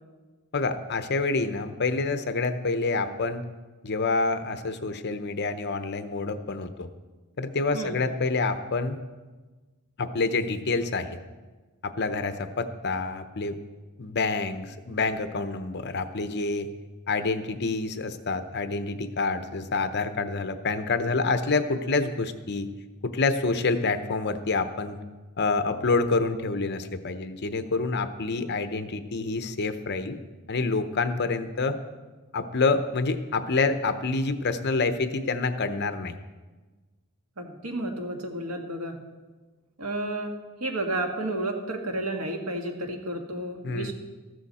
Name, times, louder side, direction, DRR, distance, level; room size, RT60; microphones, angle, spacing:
voice 1, 0.5-3.4 3.8-6.9 7.4-9.0 10.0-11.2 11.8-13.6 14.0-16.7 17.1-22.7 23.0-25.0 25.4-30.2 30.5-31.8 32.3-36.2 43.6-43.9, left 3 dB, 50° left, 9 dB, 0.8 m, -27 dB
voice 2, 37.4-39.0 39.8-40.3 40.6-43.9, right 1 dB, 80° right, 3 dB, 1.8 m, -31 dB
14.0 x 13.0 x 4.2 m, 1.3 s
head